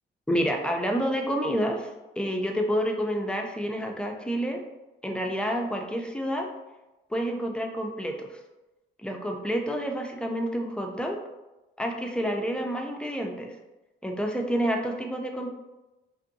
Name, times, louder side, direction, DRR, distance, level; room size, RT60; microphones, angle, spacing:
voice 1, 0.3-4.6 5.0-6.5 7.1-8.4 9.0-11.2 11.8-13.5 14.0-15.5, equal, 5° left, 2 dB, 0.4 m, -29 dB
2.6 x 2.6 x 2.6 m, 1.0 s
cardioid pair, 90°, 20 cm